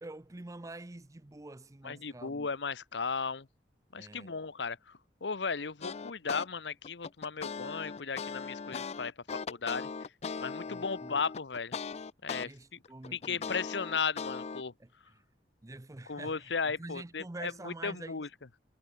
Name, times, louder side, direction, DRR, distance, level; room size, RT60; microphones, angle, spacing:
voice 1, 0.0-2.5 4.0-4.4 10.7-11.2 12.4-13.5 14.8-14.9 15.6-18.2, right 2 dB, 20° right, 0.6 m, -46 dB
voice 2, 1.8-3.5 3.9-9.9 10.4-11.8 12.2-12.8 13.1-14.7 16.1-18.3, left 5 dB, 85° left, 1.0 m, -36 dB
sound 1, 5.8-6.5 6.8-12.5 12.8-14.6, left 5 dB, 40° left, 0.4 m, -39 dB
head